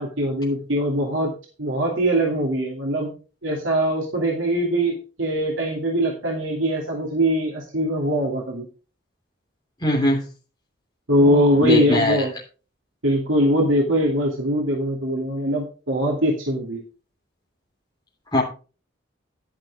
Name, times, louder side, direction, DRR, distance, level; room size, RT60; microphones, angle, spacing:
voice 1, 0.0-1.3 1.6-3.1 3.4-8.7 11.1-12.3 13.0-16.8, equal, 85° right, -1 dB, 2.7 m, -22 dB
voice 2, 9.8-10.2 11.3-12.2 18.3-18.4, left 1 dB, 20° left, -2 dB, 3.2 m, -20 dB
11.0 x 10.0 x 3.5 m, 0.36 s
head